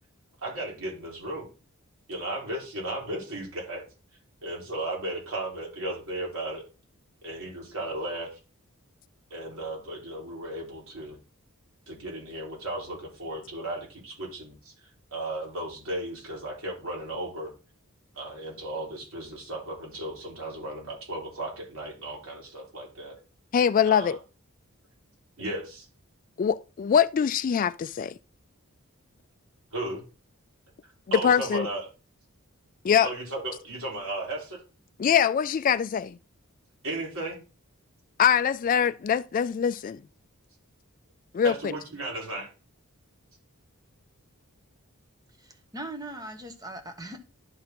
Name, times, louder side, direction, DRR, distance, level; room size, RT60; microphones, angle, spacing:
voice 1, 0.4-1.5 2.1-3.9 4.4-6.6 7.2-8.4 9.3-11.2 11.9-17.5 18.1-23.2 23.8-24.2 25.4-25.9 29.7-30.0 30.8-31.8 33.0-34.6 36.8-37.4 41.4-42.5, right 1 dB, 65° right, 3.9 m, -35 dB
voice 2, 23.5-24.2 26.4-28.1 31.2-31.7 32.8-33.1 35.0-36.2 38.2-40.0 41.3-41.5, left 8 dB, 40° left, 0.3 m, -23 dB
voice 3, 45.4-47.2, right 1 dB, 15° right, 1.3 m, -40 dB
11.5 x 3.9 x 4.4 m
head